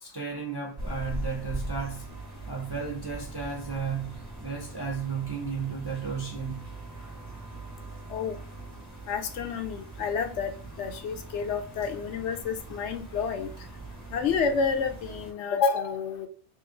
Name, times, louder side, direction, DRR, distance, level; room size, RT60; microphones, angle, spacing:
voice 1, 0.0-2.1 2.5-6.6, right 5 dB, 35° right, 0.4 m, -34 dB
sound 1, 0.8-15.3, right 2 dB, 15° right, 0.8 m, -41 dB
voice 2, 9.1-10.5 10.8-13.5 14.1-16.3, left 5 dB, 75° left, 0.9 m, -29 dB
2.9 x 2.7 x 3.7 m
omnidirectional pair, 1.2 m